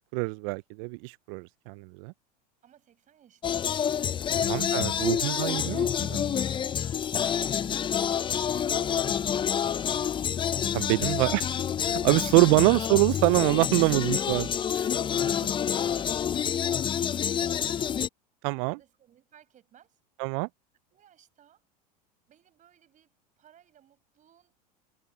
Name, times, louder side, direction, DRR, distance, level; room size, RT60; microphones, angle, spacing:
voice 1, 0.1-2.1 4.4-6.4 10.7-14.9 18.4-18.8 20.2-20.5, right 32 dB, 60° right, 0.4 m, -25 dB
voice 2, 2.6-5.9 7.6-9.6 10.8-11.2 12.2-12.6 14.6-17.9 18.7-20.0 20.9-21.6 22.3-24.6, right 10 dB, 40° right, 5.2 m, -59 dB
sound 1, 3.4-18.1, left 8 dB, 25° left, 0.5 m, -28 dB
hypercardioid pair, 90°, 21 cm